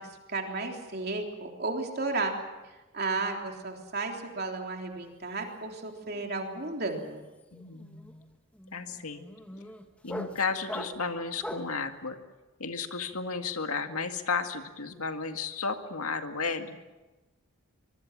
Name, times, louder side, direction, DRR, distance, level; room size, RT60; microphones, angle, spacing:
voice 1, 0.3-2.3 2.9-7.2, right 3 dB, 45° right, 2 dB, 3.5 m, -33 dB
sound 1, 5.0-5.3 5.6-11.8, equal, 5° left, 1.5 m, -42 dB
voice 2, 7.5-8.2 8.7-9.3 10.0-12.2 12.6-16.8, left 4 dB, 85° left, 6 dB, 2.1 m, -33 dB
25.0 x 22.0 x 7.5 m, 1.1 s
head